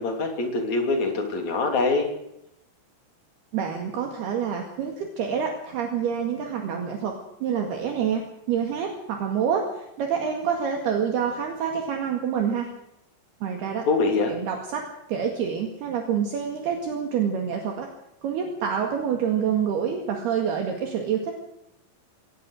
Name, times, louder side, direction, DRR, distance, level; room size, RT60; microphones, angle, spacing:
voice 1, 0.0-2.1 13.9-14.3, left 3 dB, 40° left, 3 dB, 3.8 m, -24 dB
voice 2, 3.5-7.1 7.4-12.7 13.4-13.9 14.3-17.9 18.2-21.3, right 7 dB, 65° right, 2 dB, 3.8 m, -27 dB
22.5 x 19.0 x 6.5 m, 0.81 s
omnidirectional pair, 5.4 m